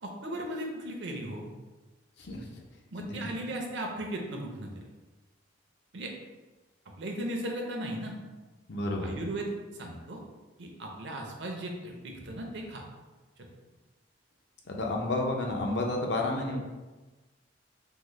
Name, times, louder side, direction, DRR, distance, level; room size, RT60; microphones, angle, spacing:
voice 1, 0.0-1.5 2.9-4.7 5.9-6.1 7.0-8.2 9.0-9.5 9.8-10.2 10.6-12.8 13.4-13.5, right 1 dB, 60° right, 1 dB, 0.5 m, -36 dB
voice 2, 2.2-2.5 3.1-3.4 8.7-9.1 14.6-16.6, left 2 dB, 55° left, 0 dB, 0.5 m, -31 dB
3.7 x 2.0 x 3.1 m, 1.2 s
head